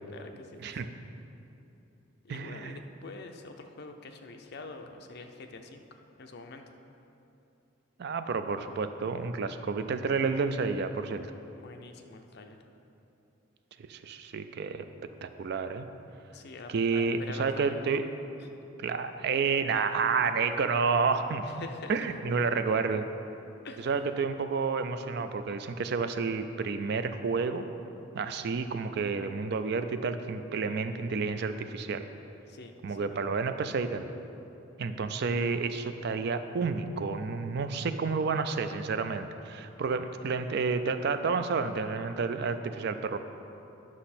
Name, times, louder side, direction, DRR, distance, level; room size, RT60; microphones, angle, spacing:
voice 1, 0.1-0.9 2.2-6.7 11.5-12.6 16.3-17.9 18.4-18.5 21.5-21.9 23.6-23.9 32.5-33.2, left 3 dB, 55° left, 5 dB, 0.6 m, -46 dB
voice 2, 2.3-2.8 8.0-11.3 13.8-14.8 15.2-15.9 16.7-18.1 18.8-23.1 23.8-27.7 28.1-32.1 32.8-34.1 34.8-43.2, right 4 dB, 55° right, 9 dB, 0.4 m, -30 dB
9.8 x 6.2 x 4.3 m, 2.9 s
head